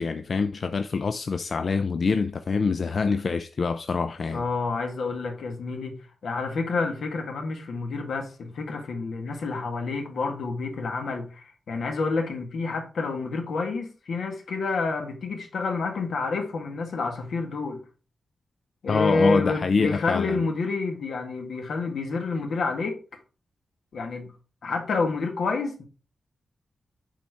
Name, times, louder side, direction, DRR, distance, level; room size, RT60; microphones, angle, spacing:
voice 1, 0.0-4.4 18.9-20.4, left 4 dB, 45° left, 0.4 m, -25 dB
voice 2, 4.3-17.8 18.8-23.2 23.9-24.3 24.6-25.8, left 3 dB, 75° left, 1.8 m, -29 dB
7.4 x 4.2 x 4.8 m
wide cardioid pair, 140°, 0 cm